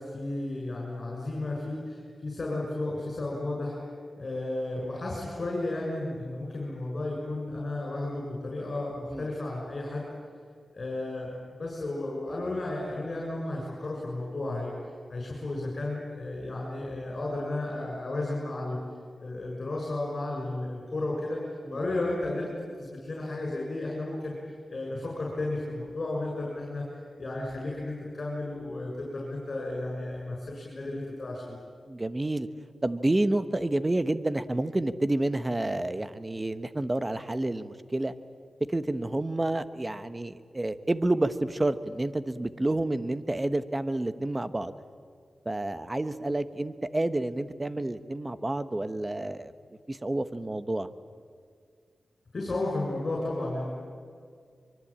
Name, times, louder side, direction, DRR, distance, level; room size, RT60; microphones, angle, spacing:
voice 1, 0.0-3.8 4.2-10.0 10.7-14.7 15.1-18.8 19.2-21.4 21.7-22.5 22.8-24.3 24.7-31.6 52.3-53.7, left 2 dB, 45° left, -2 dB, 7.1 m, -33 dB
voice 2, 31.9-32.5 32.8-38.1 38.7-44.7 45.4-49.5 49.9-50.9, right 2 dB, 20° right, 12 dB, 1.2 m, -29 dB
24.0 x 24.0 x 8.8 m, 2.1 s
wide cardioid pair, 90°, 0 cm